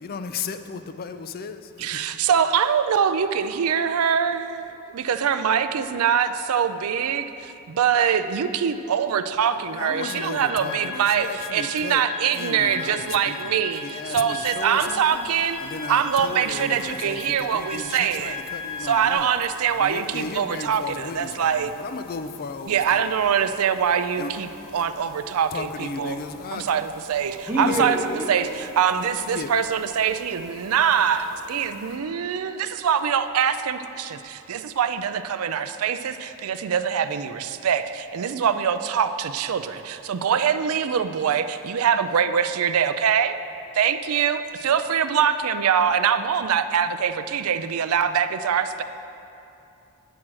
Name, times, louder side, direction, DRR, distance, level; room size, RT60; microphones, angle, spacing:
voice 1, 0.0-2.2 9.7-12.0 12.3-15.3 15.6-19.3 19.7-23.0 24.2-24.3 24.8-24.9 25.5-26.7 27.6-27.9 29.3-29.5, left 4 dB, 45° left, 10 dB, 0.4 m, -35 dB
voice 2, 1.8-4.7 4.9-15.6 15.9-18.4 18.8-21.7 22.7-24.5 24.7-26.2 26.5-28.0 28.3-43.4 43.7-48.8, right 7 dB, 75° right, 11 dB, 0.4 m, -23 dB
sound 1, 9.8-19.1, left 5 dB, 35° right, 1.3 m, -37 dB
sound 2, 14.3-32.0, left 1 dB, 65° left, 1.3 m, -48 dB
voice 3, 27.5-28.3, equal, 10° right, -3 dB, 1.1 m, -25 dB
8.9 x 4.7 x 7.3 m, 2.8 s
head